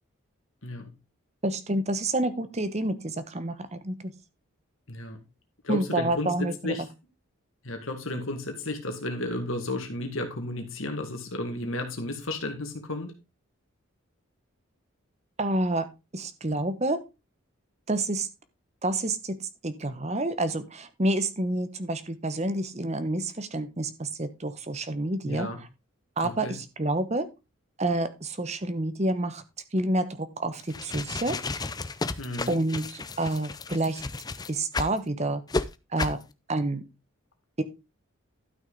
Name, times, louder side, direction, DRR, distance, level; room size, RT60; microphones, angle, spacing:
voice 1, 1.4-4.1 5.7-6.7 15.4-15.9 16.1-17.0 17.9-18.3 18.8-19.4 19.6-25.5 26.2-27.3 27.8-29.4 29.7-31.4 32.5-34.0 34.5-35.4 35.9-36.2 36.5-36.8 37.6-37.7, right 2 dB, 30° right, 11 dB, 1.0 m, -28 dB
voice 2, 4.9-5.2 5.6-6.9 7.6-13.2 25.2-25.6 26.2-26.6 32.2-32.6, left 1 dB, 70° left, 4 dB, 2.1 m, -33 dB
sound 1, 30.6-35.0 35.5-35.6 36.0-36.2, left 3 dB, 20° left, 0.5 m, -32 dB
12.0 x 6.1 x 3.9 m, 0.27 s
head